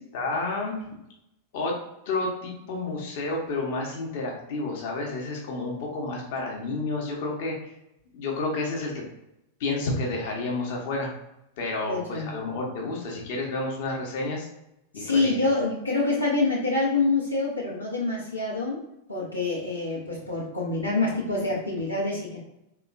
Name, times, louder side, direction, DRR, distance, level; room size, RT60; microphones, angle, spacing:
voice 1, 0.1-0.8 1.5-1.7 2.1-7.5 8.1-9.0 9.6-11.1 11.6-14.5 14.9-15.3, left 2 dB, 50° left, -1 dB, 0.9 m, -30 dB
voice 2, 11.9-12.3 14.9-18.8 19.1-22.4, left 3 dB, 85° left, -4 dB, 0.7 m, -26 dB
3.5 x 2.9 x 2.5 m, 0.85 s
figure-of-eight pair, 90°, 0 cm